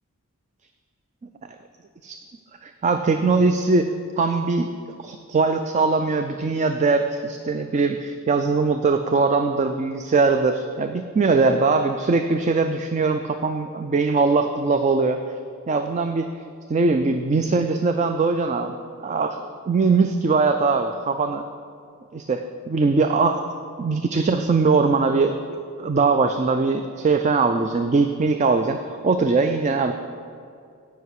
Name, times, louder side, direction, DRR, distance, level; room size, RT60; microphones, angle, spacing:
voice 1, 2.6-4.7 5.0-15.2 15.7-16.3 16.7-21.4 22.1-23.4 23.8-29.9, right 4 dB, 30° right, 7 dB, 0.4 m, -21 dB
16.5 x 5.6 x 4.7 m, 2.4 s
head